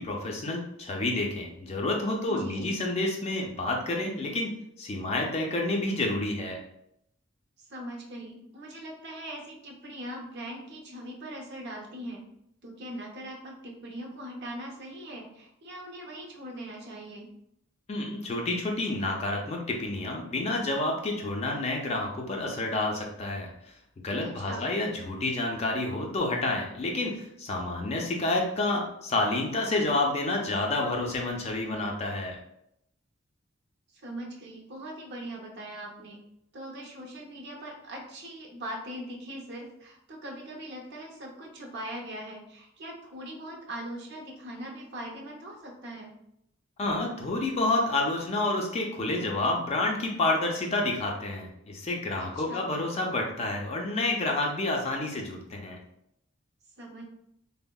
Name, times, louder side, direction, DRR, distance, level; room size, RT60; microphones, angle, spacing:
voice 1, 0.0-4.5 4.8-6.6 17.9-23.5 24.0-32.4 46.8-55.8, left 2 dB, 30° left, 0 dB, 0.4 m, -29 dB
voice 2, 2.3-2.7 7.7-12.2 12.6-17.3 24.2-24.7 33.9-36.2 36.5-46.1 52.2-52.7 56.8-57.0, right 1 dB, 55° right, 0 dB, 0.6 m, -41 dB
3.5 x 2.0 x 2.2 m, 0.77 s
head